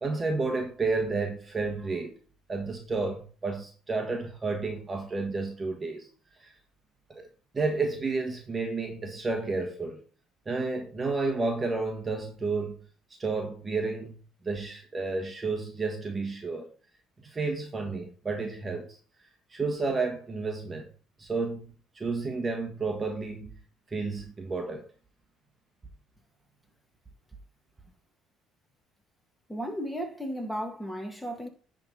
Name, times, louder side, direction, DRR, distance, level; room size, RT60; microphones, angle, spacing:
voice 1, 0.0-2.2 2.5-6.1 6.4-6.6 7.1-7.3 7.5-10.0 10.4-12.8 13.2-14.2 14.4-16.7 17.2-19.0 19.5-20.9 21.2-23.5 23.9-24.9, right 3 dB, 25° right, 1.4 m, -31 dB
voice 2, 29.5-31.5, equal, 5° left, 2.0 m, -34 dB
10.5 x 3.8 x 3.9 m
supercardioid pair, 80°, 0 cm